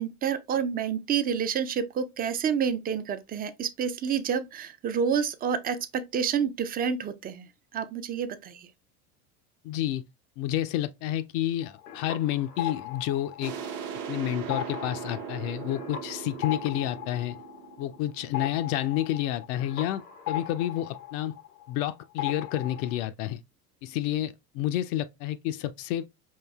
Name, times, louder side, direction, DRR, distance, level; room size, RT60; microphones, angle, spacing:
voice 1, 0.0-7.5 7.7-8.6, right 7 dB, 20° right, 0.4 m, -29 dB
voice 2, 9.6-10.0 10.4-13.5 14.1-17.4 17.8-21.3 21.7-23.4 23.8-26.1, left 12 dB, 50° left, 0.4 m, -30 dB
sound 1, 11.6-14.1 14.4-21.9 22.2-23.0, left 11 dB, 90° left, 0.8 m, -38 dB
sound 2, 13.4-18.9, right 7 dB, 55° right, 1.0 m, -39 dB
5.5 x 2.6 x 2.3 m
hypercardioid pair, 85°, 46 cm